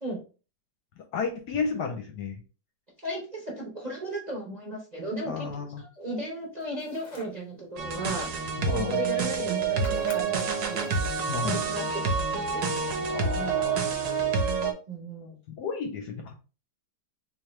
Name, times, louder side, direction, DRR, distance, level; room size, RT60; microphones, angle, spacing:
voice 1, 1.0-2.4 5.2-5.8 8.6-9.0 11.3-11.7 13.1-13.9 15.5-16.4, left 5 dB, 70° left, 3 dB, 1.0 m, -33 dB
voice 2, 3.0-5.5 5.8-8.3 8.7-10.9 11.4-13.6 14.9-15.4, right 1 dB, 35° right, -2 dB, 0.7 m, -36 dB
sound 1, 6.6-7.4 8.9-9.0 9.2-9.5 9.8-11.2, left 3 dB, 45° left, 0.5 m, -48 dB
sound 2, 7.8-14.7, right 5 dB, 65° right, 1.0 m, -28 dB
3.8 x 2.9 x 3.0 m, 0.35 s
omnidirectional pair, 2.1 m